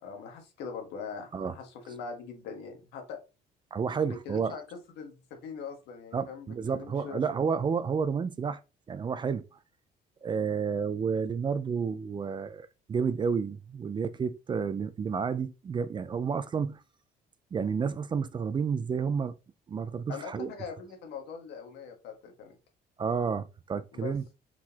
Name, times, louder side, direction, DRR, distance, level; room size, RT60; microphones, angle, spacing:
voice 1, 0.0-3.2 4.0-4.6 5.0-7.2 20.1-22.6 23.9-24.1, left 6 dB, 85° left, 1.5 m, -42 dB
voice 2, 3.7-4.6 6.1-8.6 8.9-9.5 10.2-16.8 17.5-19.3 19.7-20.5 23.0-24.2, right 6 dB, 30° right, 0.4 m, -30 dB
4.6 x 3.9 x 2.8 m
cardioid pair, 110°, 17 cm